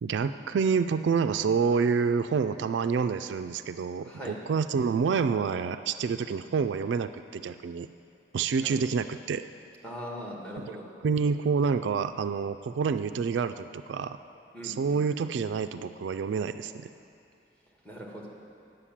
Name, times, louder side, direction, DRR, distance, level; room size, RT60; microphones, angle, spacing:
voice 1, 0.0-7.9 8.3-9.4 10.6-10.7 11.0-14.2 14.6-16.9, right 5 dB, 70° right, 10 dB, 0.3 m, -28 dB
voice 2, 4.0-4.4 8.6-8.8 9.8-10.9 14.5-15.0 17.8-18.3, equal, 5° left, -3 dB, 1.6 m, -40 dB
9.9 x 7.8 x 7.3 m, 2.5 s
head